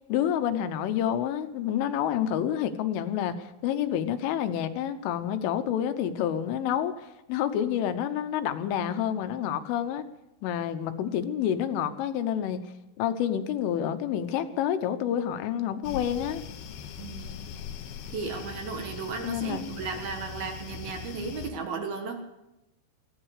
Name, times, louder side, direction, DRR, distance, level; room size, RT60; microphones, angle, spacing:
voice 1, 0.1-10.0 10.4-12.7 13.0-16.4 19.2-19.7, left 10 dB, 85° left, 9 dB, 3.5 m, -28 dB
sound 1, 15.8-21.5, left 7 dB, 70° left, 2.7 m, -40 dB
voice 2, 17.0-17.4 18.1-22.2, right 4 dB, 65° right, 4 dB, 2.8 m, -35 dB
19.0 x 15.5 x 4.9 m, 0.92 s
omnidirectional pair, 5.6 m